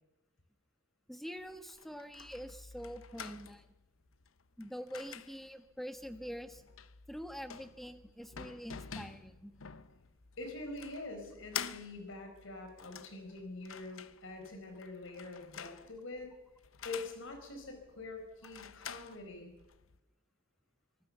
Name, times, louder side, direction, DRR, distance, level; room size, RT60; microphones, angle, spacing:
voice 1, 1.1-3.7 4.6-6.6 7.1-9.5, equal, ahead, 8 dB, 1.5 m, -45 dB
sound 1, 1.4-20.0, left 8 dB, 90° left, 0.9 m, -49 dB
voice 2, 10.4-16.3 16.8-19.5, left 2 dB, 75° left, 5 dB, 5.2 m, -45 dB
24.5 x 19.0 x 6.9 m, 1.0 s
head